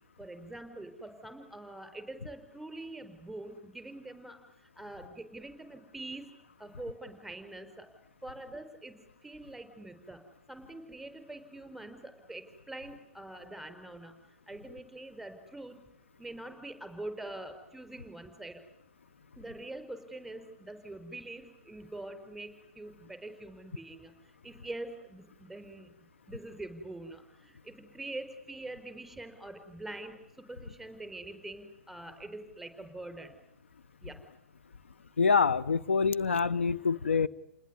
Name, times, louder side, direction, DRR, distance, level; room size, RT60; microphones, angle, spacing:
voice 1, 0.2-7.9 8.2-15.9 16.2-18.6 19.4-25.9 26.3-33.4 34.0-34.2, right 2 dB, ahead, 9 dB, 4.6 m, -44 dB
voice 2, 35.2-37.3, left 5 dB, 65° left, 15 dB, 1.0 m, -26 dB
29.5 x 20.5 x 9.8 m, 0.86 s
figure-of-eight pair, 120°, 7 cm